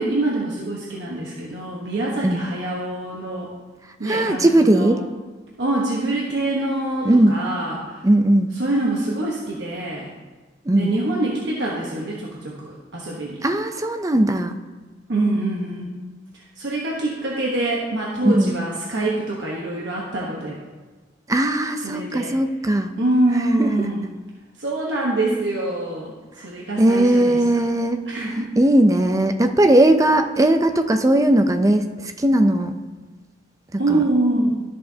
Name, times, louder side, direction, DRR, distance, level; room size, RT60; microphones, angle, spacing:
voice 1, 0.0-3.5 4.0-4.9 5.6-8.0 8.6-10.1 10.7-13.4 15.1-15.9 16.6-20.6 21.8-22.3 23.0-24.1 24.6-27.6 28.1-28.5 33.8-34.6, right 2 dB, 65° right, -4 dB, 1.1 m, -25 dB
voice 2, 4.0-5.0 7.0-7.4 8.0-8.5 10.7-10.9 13.4-14.5 18.2-18.5 21.3-22.9 23.6-23.7 26.8-28.1 28.6-31.9 32.2-32.7 33.7-34.0, right 1 dB, 20° right, 7 dB, 0.5 m, -18 dB
13.0 x 6.6 x 2.8 m, 1.3 s
head